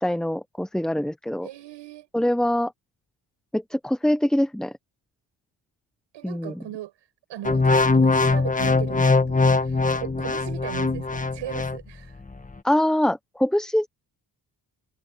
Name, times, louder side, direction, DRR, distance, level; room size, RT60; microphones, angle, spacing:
voice 1, 0.0-1.5 2.1-2.7 3.5-4.7 6.2-6.6 12.6-13.9, left 1 dB, ahead, 0.8 m, -24 dB
voice 2, 1.4-2.1 6.1-6.9 7.3-12.2, right 13 dB, 85° right, 5.6 m, -38 dB
sound 1, 7.4-11.8 12.3-12.5, left 3 dB, 20° left, 1.5 m, -21 dB
cardioid pair, 70°, 43 cm